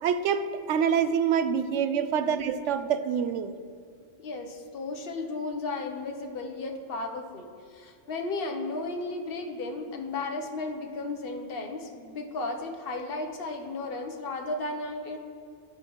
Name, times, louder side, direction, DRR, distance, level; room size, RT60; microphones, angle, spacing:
voice 1, 0.0-3.6, right 7 dB, 80° right, 11 dB, 0.9 m, -26 dB
voice 2, 4.2-15.2, left 3 dB, 55° left, 4 dB, 1.1 m, -34 dB
13.0 x 8.3 x 3.1 m, 2.3 s
omnidirectional pair, 1.2 m